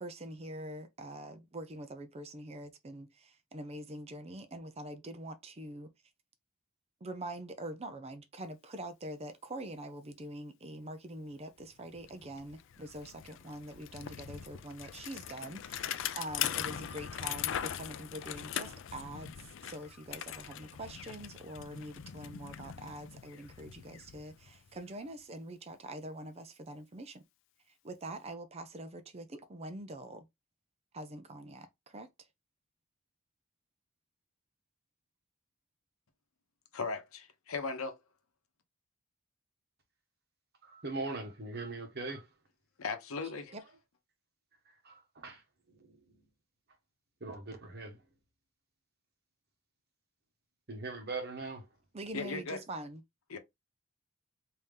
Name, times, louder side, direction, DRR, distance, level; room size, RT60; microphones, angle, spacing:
voice 1, 0.0-5.9 7.0-27.2 27.8-30.3 30.9-32.1 51.9-53.0, right 1 dB, 30° right, 0.5 m, -44 dB
Bicycle, 11.6-11.7 12.0-24.9, left 10 dB, 60° left, 0.3 m, -41 dB
voice 2, 36.7-38.0 42.8-43.5 52.1-52.6 53.3-53.4, left 4 dB, 85° left, 0.8 m, -37 dB
voice 3, 40.7-42.3 44.8-45.4 45.8-45.9 47.2-48.0 50.7-51.6, right 3 dB, 50° right, 1.2 m, -40 dB
3.5 x 2.8 x 3.3 m
head